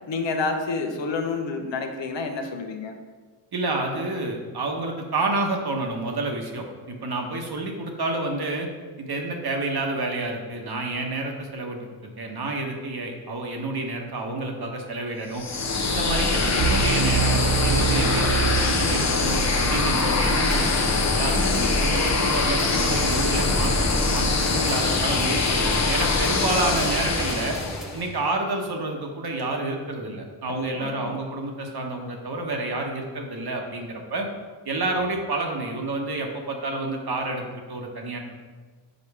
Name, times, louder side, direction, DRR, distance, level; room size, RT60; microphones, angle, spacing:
voice 1, 0.1-3.0 21.4-22.0 30.5-31.2, left 4 dB, 60° left, 4 dB, 0.9 m, -29 dB
voice 2, 3.5-8.7 9.0-15.5 15.8-21.3 21.8-27.6 27.9-34.3 34.6-38.4, right 2 dB, 50° right, 2 dB, 1.2 m, -29 dB
sound 1, 15.3-28.0, left 3 dB, 35° left, 0.8 m, -23 dB
sound 2, 16.6-19.5, right 6 dB, 65° right, 0.7 m, -26 dB
sound 3, 19.7-28.1, equal, ahead, 0.3 m, -37 dB
5.2 x 4.2 x 4.8 m, 1.4 s
supercardioid pair, 50°, 49 cm